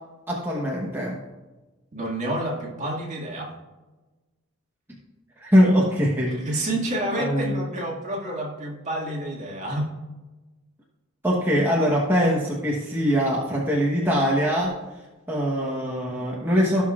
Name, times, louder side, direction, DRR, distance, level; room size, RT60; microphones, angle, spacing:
voice 1, 0.3-1.2 5.4-6.6 7.2-7.6 11.2-14.7 15.3-16.8, equal, 10° right, -4 dB, 1.1 m, -22 dB
voice 2, 1.9-3.5 6.3-9.9, right 1 dB, 35° right, -2 dB, 2.0 m, -29 dB
17.0 x 5.9 x 2.4 m, 1.2 s
head